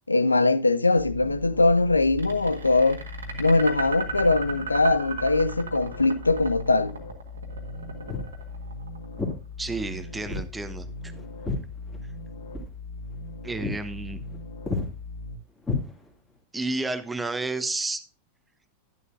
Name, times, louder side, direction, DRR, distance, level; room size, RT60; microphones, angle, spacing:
voice 1, 0.1-3.0 3.4-6.9, left 2 dB, 80° left, 0.5 m, -21 dB
sound 1, 1.0-15.4, left 3 dB, 60° left, 1.6 m, -40 dB
sound 2, 2.2-9.3, right 5 dB, 70° right, 1.6 m, -36 dB
Walk footsteps, 8.1-8.4 9.2-9.4 10.2-10.5 10.8-12.2 12.5-12.7 13.1-13.3 13.6-13.8 14.1-14.4 14.7-14.9 15.6-16.3, left 3 dB, 10° left, 2.4 m, -31 dB
voice 2, 9.6-11.1 13.4-14.2 16.5-18.0, right 3 dB, 10° right, 0.9 m, -31 dB
11.0 x 11.0 x 2.5 m
figure-of-eight pair, 90°, 0 cm